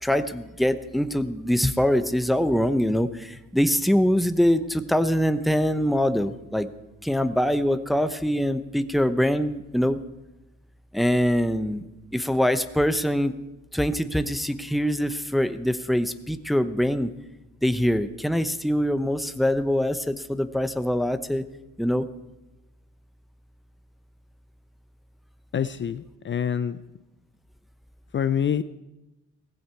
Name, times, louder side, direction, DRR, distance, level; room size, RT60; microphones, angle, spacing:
voice 1, 0.0-6.7 7.0-10.0 10.9-11.9 12.1-13.3 13.7-17.1 17.6-21.4 21.8-22.1, equal, ahead, 10 dB, 0.8 m, -23 dB
voice 2, 25.5-26.8 28.1-28.6, left 8 dB, 40° left, 13 dB, 0.6 m, -26 dB
17.5 x 15.5 x 4.6 m, 0.99 s
cardioid pair, 90°, 30 cm